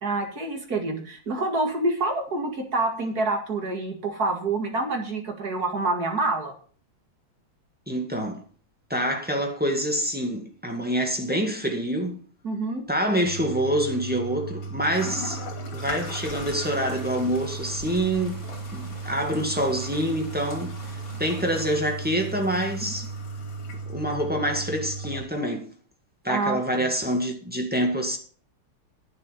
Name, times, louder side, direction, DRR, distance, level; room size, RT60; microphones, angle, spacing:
voice 1, 0.0-6.5 12.4-12.8 26.3-26.8, right 2 dB, 45° right, 2.5 m, -27 dB
voice 2, 7.9-8.4 8.9-12.2 12.9-15.4 15.7-18.4 18.7-23.1 23.8-25.7 26.2-28.2, equal, 5° right, 2.0 m, -26 dB
Toilet flush, 13.2-25.2, right 3 dB, 75° left, 3.4 m, -35 dB
sound 1, 16.2-21.8, left 1 dB, 25° left, 3.0 m, -44 dB
11.0 x 9.2 x 5.3 m
omnidirectional pair, 2.4 m